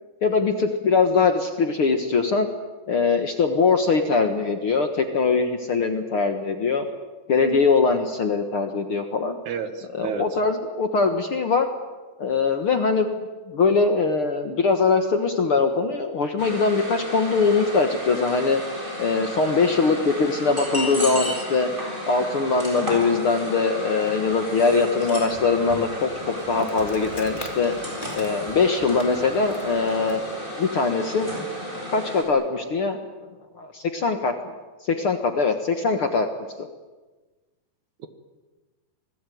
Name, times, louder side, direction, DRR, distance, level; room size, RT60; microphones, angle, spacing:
voice 1, 0.2-2.5 2.9-6.9 7.3-9.4 10.0-11.7 12.2-13.2 13.5-18.6 19.0-21.7 22.1-27.7 28.1-30.2 30.6-31.4 31.9-33.0 33.6-34.3 34.8-36.3 36.6-36.7, left 4 dB, 50° left, 6 dB, 1.8 m, -22 dB
voice 2, 9.5-10.3 24.7-24.9, right 7 dB, 65° right, 10 dB, 2.6 m, -30 dB
sound 1, 16.4-32.2, equal, 15° right, 7.1 m, -33 dB
Insect, 24.2-30.3, left 1 dB, 15° left, 2.4 m, -43 dB
27.0 x 20.0 x 9.4 m, 1.3 s
omnidirectional pair, 4.0 m